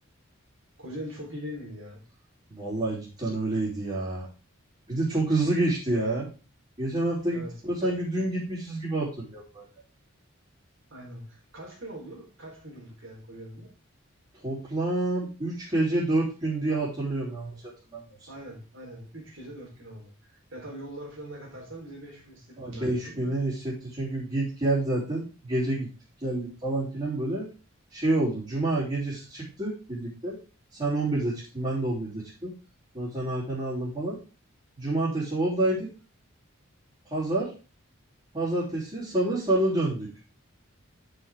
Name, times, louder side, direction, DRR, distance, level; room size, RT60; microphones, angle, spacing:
voice 1, 0.8-2.0 7.3-7.5 7.8-7.9 10.9-13.7 18.3-20.1 20.5-23.3, equal, 65° right, 0 dB, 4.1 m, -42 dB
voice 2, 2.5-4.3 4.9-6.3 6.8-9.7 14.4-17.6 17.9-18.3 22.6-25.9 26.2-27.5 27.9-30.4 30.7-32.5 32.9-34.2 34.8-35.9 37.1-37.5 38.3-40.1, right 2 dB, 25° right, -10 dB, 3.5 m, -28 dB
10.0 x 6.7 x 3.7 m, 0.34 s
head